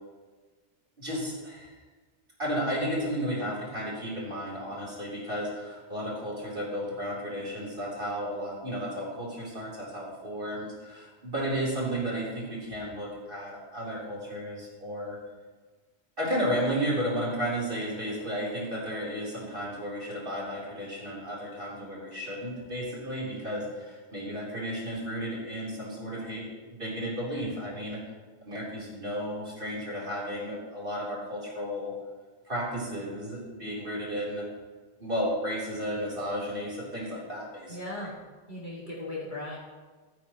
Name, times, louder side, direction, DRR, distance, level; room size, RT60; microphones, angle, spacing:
voice 1, 1.0-1.8 2.4-15.2 16.2-28.0 28.5-31.9 32.5-34.4 35.0-38.1, equal, 60° right, -4 dB, 4.1 m, -33 dB
voice 2, 37.7-38.1 38.5-39.6, left 1 dB, 50° left, -7 dB, 2.3 m, -37 dB
15.0 x 12.5 x 3.1 m, 1.4 s
omnidirectional pair, 1.0 m